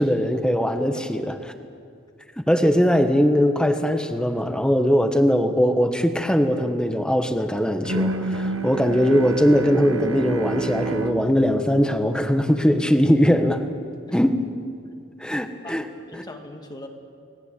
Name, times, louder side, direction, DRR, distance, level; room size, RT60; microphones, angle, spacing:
voice 1, 0.0-1.3 2.5-13.6 14.1-14.4 15.2-15.8, equal, 5° left, 7 dB, 1.5 m, -20 dB
voice 2, 0.9-1.2 14.1-14.2 15.6-16.9, left 1 dB, 20° left, 4 dB, 2.1 m, -41 dB
Bowed string instrument, 7.8-12.9, right 2 dB, 75° right, 1.6 m, -29 dB
30.0 x 20.5 x 8.5 m, 2.4 s
head